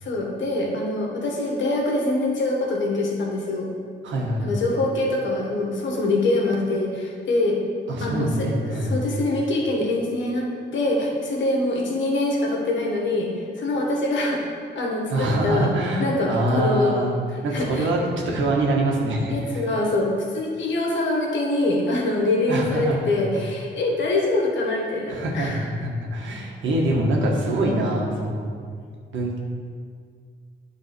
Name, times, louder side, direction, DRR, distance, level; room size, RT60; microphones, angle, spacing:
voice 1, 0.0-3.7 4.4-7.6 8.0-14.4 14.7-15.7 16.0-17.0 17.5-17.9 19.3-25.6, left 2 dB, 75° left, -1 dB, 1.6 m, -24 dB
voice 2, 4.0-4.5 7.9-9.0 15.1-17.2 17.4-18.0 18.2-19.6 22.5-23.2 25.1-28.5 29.1-29.4, right 1 dB, 80° right, -2 dB, 1.7 m, -24 dB
9.8 x 4.0 x 6.1 m, 2.1 s
cardioid pair, 95°, 19 cm